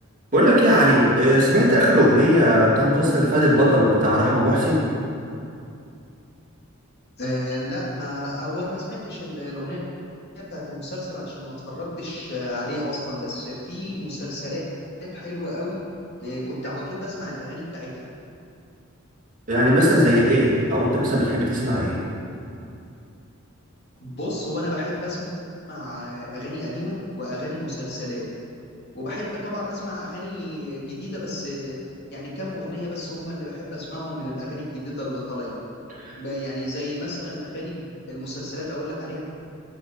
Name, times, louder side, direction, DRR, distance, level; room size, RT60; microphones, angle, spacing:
voice 1, 0.3-4.8 19.5-22.0 36.0-36.1, equal, 40° right, -6 dB, 2.6 m, -18 dB
voice 2, 7.2-9.8 10.3-14.6 15.0-15.8 16.2-18.1 24.0-25.3 25.7-28.2 28.9-31.8 32.1-35.6 36.2-39.2, left 1 dB, 50° left, -6 dB, 2.7 m, -32 dB
9.9 x 8.0 x 6.0 m, 2.5 s
head